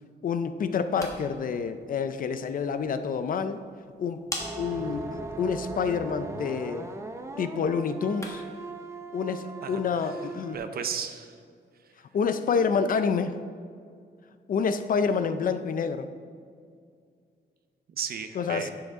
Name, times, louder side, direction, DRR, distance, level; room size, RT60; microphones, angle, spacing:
voice 1, 0.2-3.6 4.0-4.2 4.6-5.1 5.4-6.9 7.4-8.4 9.1-10.6 12.1-13.4 14.5-16.1 18.3-18.7, left 6 dB, 50° left, 10 dB, 0.5 m, -28 dB
sound 1, 0.7-8.6, left 1 dB, 15° left, 1.4 m, -45 dB
sound 2, 4.4-10.6, right 3 dB, 15° right, 0.6 m, -39 dB
voice 2, 9.6-10.1 10.5-11.3 17.9-18.7, right 7 dB, 60° right, 8 dB, 0.8 m, -34 dB
11.5 x 7.9 x 3.6 m, 2.2 s
wide cardioid pair, 150°, 18 cm